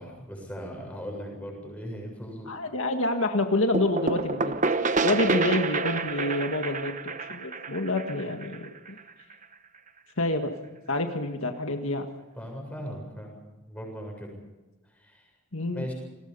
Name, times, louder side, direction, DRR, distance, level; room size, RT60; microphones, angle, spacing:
voice 1, 0.0-2.5 5.1-5.4 10.7-10.9 12.3-13.4 13.6-14.3 14.8-15.3 15.6-15.9, equal, 5° left, 0 dB, 7.3 m, -39 dB
voice 2, 2.5-4.5 5.0-9.0 10.2-10.5 10.9-12.1 15.5-15.8, left 2 dB, 70° left, 5 dB, 1.8 m, -28 dB
sound 1, 3.7-9.3, right 3 dB, 35° right, 1.0 m, -28 dB
29.5 x 21.5 x 5.5 m, 1.1 s
head